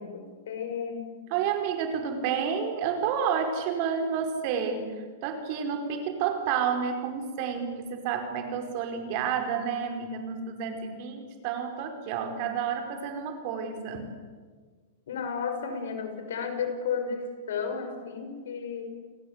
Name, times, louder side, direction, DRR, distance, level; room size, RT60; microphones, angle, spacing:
voice 1, 0.0-1.1 15.1-18.9, left 6 dB, 80° left, 7 dB, 5.9 m, -33 dB
voice 2, 1.3-4.9 5.2-14.1, right 7 dB, 45° right, 6 dB, 5.0 m, -30 dB
29.5 x 20.5 x 8.2 m, 1.5 s
supercardioid pair, 150°, 0 cm